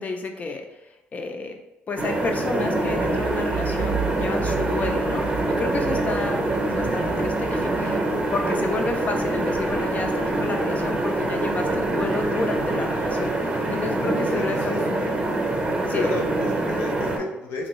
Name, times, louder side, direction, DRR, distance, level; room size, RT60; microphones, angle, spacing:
voice 1, 0.0-1.6 1.9-5.3 5.6-13.3 13.7-14.8 15.9-16.1, left 3 dB, 40° left, 4 dB, 0.5 m, -30 dB
sound 1, 2.0-17.2, right 2 dB, 30° right, 0.6 m, -25 dB
sound 2, 2.8-13.3, right 7 dB, 80° right, 0.4 m, -36 dB
voice 2, 14.3-15.1 15.9-17.7, left 2 dB, 85° left, 1 dB, 0.6 m, -31 dB
2.9 x 2.6 x 3.0 m, 0.98 s
cardioid pair, 90°, 4 cm